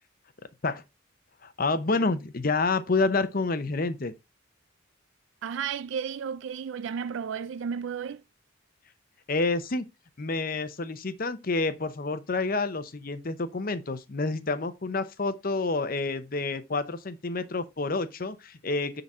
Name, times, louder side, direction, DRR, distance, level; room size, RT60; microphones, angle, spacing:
voice 1, 1.4-4.1 9.3-9.9 10.2-19.0, left 3 dB, 45° left, 0.8 m, -28 dB
voice 2, 5.4-8.2, right 7 dB, 65° right, 0.3 m, -33 dB
9.7 x 4.0 x 4.3 m
head